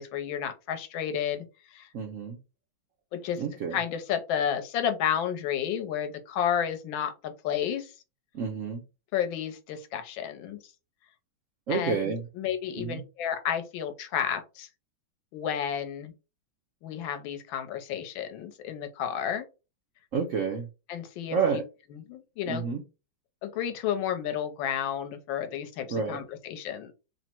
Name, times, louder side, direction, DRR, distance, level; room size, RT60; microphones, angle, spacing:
voice 1, 0.0-1.4 1.7-1.9 3.1-3.4 3.7-7.9 9.1-10.6 11.7-14.7 15.3-16.1 16.8-19.5 20.9-21.6 21.9-22.6 23.4-26.9, left 9 dB, 80° left, 8 dB, 1.5 m, -31 dB
voice 2, 1.9-2.4 3.4-3.8 8.3-8.8 11.7-12.2 12.8-13.0 20.1-20.7 21.3-21.6 22.5-22.8 25.9-26.2, right 5 dB, 85° right, 3 dB, 0.6 m, -29 dB
3.7 x 2.1 x 4.3 m, 0.29 s
omnidirectional pair, 2.2 m